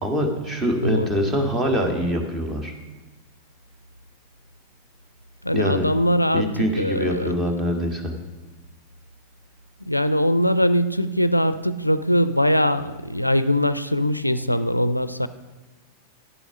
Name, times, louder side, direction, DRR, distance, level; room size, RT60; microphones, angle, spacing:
voice 1, 0.0-2.7 5.5-5.8 6.3-8.1, equal, 15° right, 1.7 m, -24 dB
voice 2, 0.8-1.1 5.4-7.3 9.9-15.3, equal, 90° left, 0.3 m, -21 dB
10.5 x 7.0 x 6.3 m
figure-of-eight pair, 90°, 0 cm